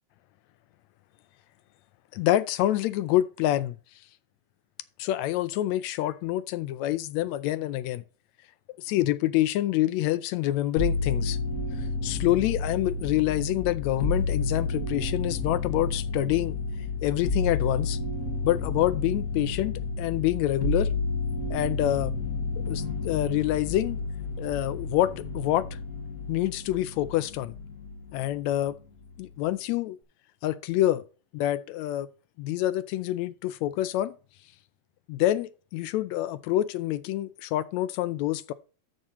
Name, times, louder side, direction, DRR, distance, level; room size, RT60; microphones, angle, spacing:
voice 1, 2.1-3.8 5.0-8.0 8.8-11.4 11.8-16.6 17.0-18.0 18.4-20.9 21.5-22.1 22.7-24.0 24.4-25.8 26.3-27.6 28.1-28.8 29.2-30.0 30.4-31.0 31.3-32.1 32.4-34.1 35.1-38.5, left 14 dB, 80° left, 1.8 m, -27 dB
sound 1, 10.8-28.2 28.5-29.3, left 3 dB, 50° left, 1.2 m, -31 dB
13.0 x 6.3 x 3.0 m
omnidirectional pair, 3.4 m